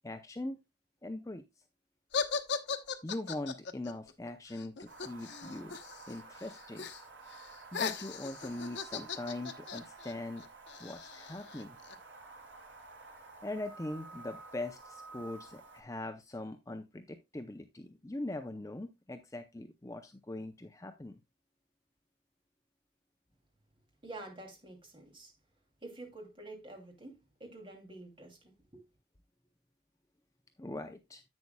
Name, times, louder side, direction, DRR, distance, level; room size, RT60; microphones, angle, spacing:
voice 1, 0.0-0.6 1.0-1.4 3.0-5.8 6.1-6.9 7.7-10.4 10.8-11.8 13.4-21.2 30.6-31.2, left 2 dB, 15° left, 0.5 m, -41 dB
sound 1, 2.1-6.1 6.4-7.0 7.3-12.0, left 5 dB, 70° left, 0.9 m, -38 dB
sound 2, 4.9-15.8, right 3 dB, 90° right, 2.9 m, -52 dB
voice 2, 24.0-25.3 25.8-28.8, right 2 dB, 25° right, 2.7 m, -48 dB
10.5 x 8.3 x 2.2 m
head